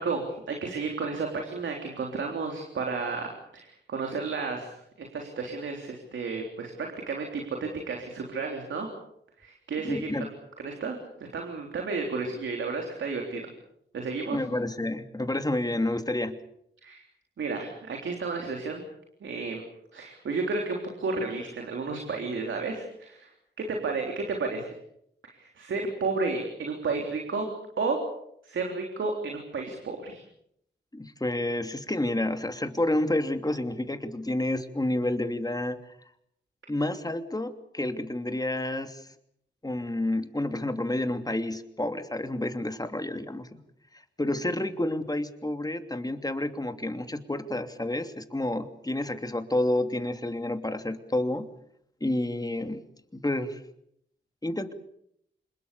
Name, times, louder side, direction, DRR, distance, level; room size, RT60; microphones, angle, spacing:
voice 1, 0.0-4.7 5.0-8.9 9.4-10.3 10.6-13.4 13.9-14.4 16.8-17.0 17.4-18.8 19.2-19.6 19.9-23.3 23.6-24.7 25.2-28.0 28.4-30.2, right 4 dB, 90° right, 2 dB, 3.5 m, -32 dB
voice 2, 9.8-10.3 14.3-16.4 30.9-35.9 36.7-39.1 39.6-43.6 43.9-51.5 52.0-52.8 53.1-53.6 54.4-54.7, left 1 dB, 20° left, 7 dB, 2.9 m, -29 dB
26.5 x 21.5 x 6.9 m, 0.73 s
cardioid pair, 50°, 19 cm